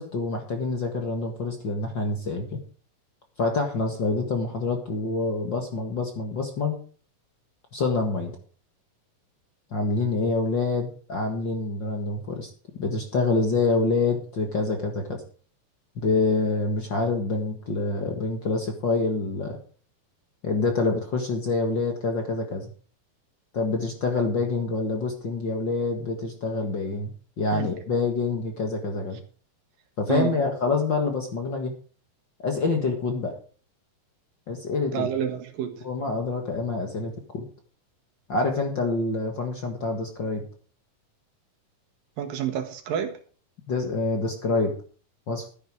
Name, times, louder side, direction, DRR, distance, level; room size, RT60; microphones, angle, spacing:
voice 1, 0.0-2.6 3.4-6.8 7.7-8.3 9.7-12.5 12.8-15.2 16.0-19.6 20.4-22.7 23.5-27.1 27.4-29.2 30.0-31.7 32.4-33.3 34.5-35.1 35.8-37.4 38.3-40.4 43.7-44.7 45.3-45.5, left 3 dB, 45° left, 3 dB, 1.8 m, -26 dB
voice 2, 34.9-35.8 42.2-43.2, right 9 dB, 80° right, 6 dB, 3.4 m, -28 dB
13.0 x 9.9 x 4.8 m, 0.41 s
omnidirectional pair, 4.0 m